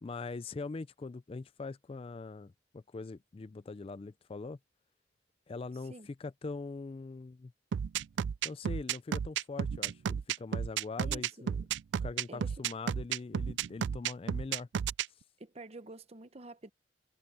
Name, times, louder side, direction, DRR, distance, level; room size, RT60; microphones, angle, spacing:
voice 1, 0.0-4.6 5.5-7.5 8.4-11.6 12.0-14.7, left 3 dB, 30° left, 0.3 m, -42 dB
sound 1, 7.7-15.1, right 8 dB, 80° right, 0.4 m, -32 dB
voice 2, 11.0-11.5 12.3-12.5 15.4-16.7, right 2 dB, 35° right, 0.9 m, -48 dB
head